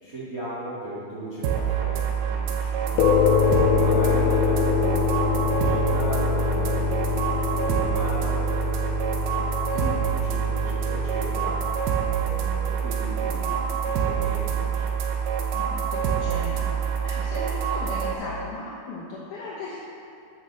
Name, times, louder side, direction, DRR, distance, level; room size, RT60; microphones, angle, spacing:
voice 1, 0.0-3.1 3.8-8.4 10.2-11.7 12.2-15.1, equal, 40° right, -10 dB, 1.2 m, -37 dB
sound 1, 1.4-18.1, right 7 dB, 85° right, 3.1 m, -26 dB
sound 2, 3.0-11.7, left 8 dB, 90° left, 2.2 m, -25 dB
voice 2, 3.6-4.0 9.4-9.9 15.5-19.8, left 3 dB, 70° left, -6 dB, 2.0 m, -37 dB
9.1 x 6.5 x 6.4 m, 2.6 s
omnidirectional pair, 4.9 m